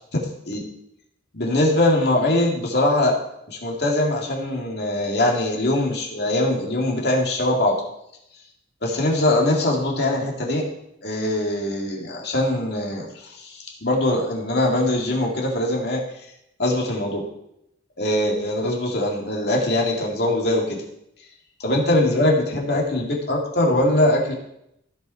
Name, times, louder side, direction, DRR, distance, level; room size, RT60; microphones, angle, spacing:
voice 1, 1.3-3.1 3.5-7.8 8.8-10.6 11.0-16.0 16.6-17.2 18.0-20.8 21.6-24.3, left 1 dB, 55° left, -1 dB, 2.3 m, -22 dB
15.5 x 5.6 x 4.5 m, 0.80 s
head